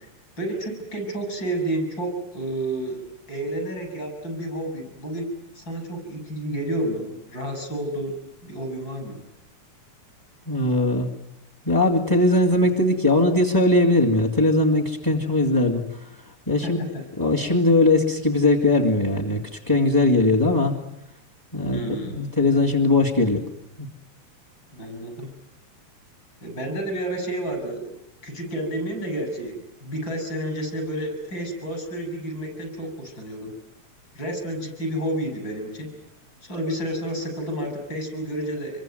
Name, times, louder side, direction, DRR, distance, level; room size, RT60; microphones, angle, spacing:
voice 1, 0.4-3.0 3.3-5.3 5.6-8.1 8.4-9.2 16.6-16.7 21.7-22.2 24.7-25.3 26.4-27.9 28.2-33.5 34.1-35.9 36.4-38.8, right 1 dB, 35° left, 6 dB, 7.5 m, -30 dB
voice 2, 10.5-11.1 11.7-16.1 16.5-16.8 17.2-19.4 19.7-20.7 21.5-21.8 22.1-23.4 23.8-23.9, left 2 dB, 10° left, 6 dB, 1.6 m, -20 dB
26.0 x 23.0 x 9.3 m, 0.80 s
omnidirectional pair, 3.3 m